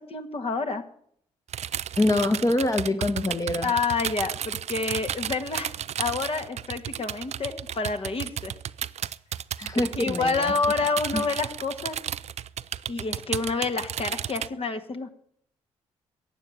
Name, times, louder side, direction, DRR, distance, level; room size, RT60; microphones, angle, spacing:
voice 1, 0.1-0.8 3.6-8.5 10.0-12.0 12.9-15.1, left 4 dB, 45° left, 6 dB, 1.9 m, -28 dB
sound 1, 1.5-14.5, right 10 dB, 60° right, 0.5 m, -33 dB
voice 2, 2.0-3.7 9.6-10.5 11.1-11.2, left 2 dB, 25° left, 7 dB, 1.4 m, -25 dB
15.0 x 8.9 x 7.7 m, 0.65 s
hypercardioid pair, 50°, 13 cm